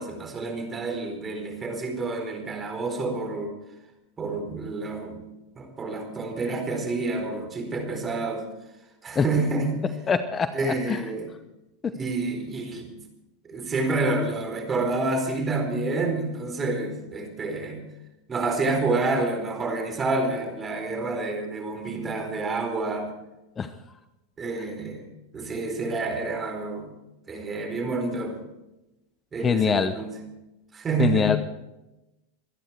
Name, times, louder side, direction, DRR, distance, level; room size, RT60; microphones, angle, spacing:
voice 1, 0.0-3.5 4.2-5.2 5.6-8.5 9.0-9.9 10.5-11.3 11.9-12.9 13.4-17.9 18.3-23.1 24.4-25.1 25.3-26.9 27.3-28.4 29.3-30.2 30.7-31.4, right 3 dB, 25° right, 4 dB, 4.3 m, -28 dB
voice 2, 10.1-10.5 10.9-11.0 11.8-11.9 23.6-23.7 29.4-29.9 31.0-31.4, left 6 dB, 25° left, 11 dB, 0.8 m, -22 dB
25.5 x 10.0 x 4.6 m, 0.96 s
hypercardioid pair, 105°, 0 cm